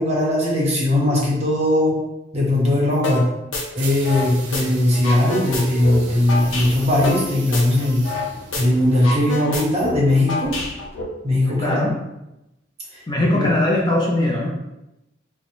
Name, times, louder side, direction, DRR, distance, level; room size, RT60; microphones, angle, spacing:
voice 1, 0.0-1.9 2.3-3.2 3.7-8.0 8.6-10.5 11.2-11.9 12.9-13.0, left 1 dB, 35° right, -4 dB, 0.9 m, -19 dB
sound 1, 3.0-3.2 3.5-4.6 4.9-8.3 8.5-8.6 8.9-11.0, left 2 dB, 85° left, 0.6 m, -27 dB
sound 2, 3.7-9.4, right 3 dB, 70° right, 0.6 m, -38 dB
voice 2, 11.4-11.9 13.1-14.5, left 1 dB, 20° left, -3 dB, 0.5 m, -20 dB
3.8 x 2.1 x 2.9 m, 0.91 s
head